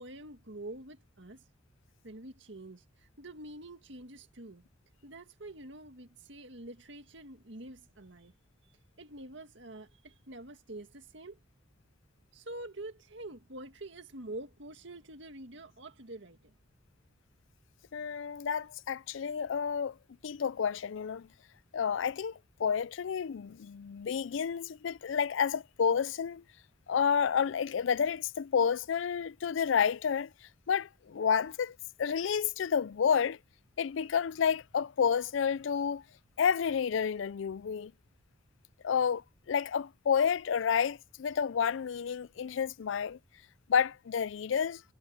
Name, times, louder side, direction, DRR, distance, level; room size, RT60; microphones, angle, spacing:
voice 1, 0.0-1.4 2.0-4.6 5.0-8.3 9.0-11.4 12.3-16.5, right 1 dB, 60° right, 2.0 m, -46 dB
voice 2, 17.9-19.9 20.2-21.3 21.7-26.4 26.9-30.3 30.7-33.4 33.8-36.0 36.4-37.9 38.8-43.2 43.7-44.8, left 7 dB, 70° left, 0.4 m, -30 dB
head